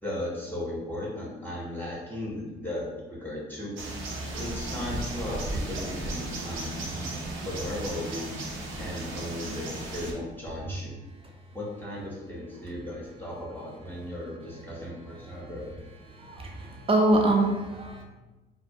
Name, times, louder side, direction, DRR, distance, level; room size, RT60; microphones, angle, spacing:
voice 1, 0.0-3.7 4.3-8.4 8.8-10.9 11.5-15.7, left 1 dB, 10° left, -6 dB, 0.7 m, -36 dB
sound 1, 3.8-10.1, right 2 dB, 75° right, 0.5 m, -35 dB
voice 2, 16.1-18.0, right 1 dB, 30° right, 1 dB, 0.5 m, -24 dB
2.3 x 2.1 x 2.6 m, 1.2 s
cardioid pair, 90°, 20 cm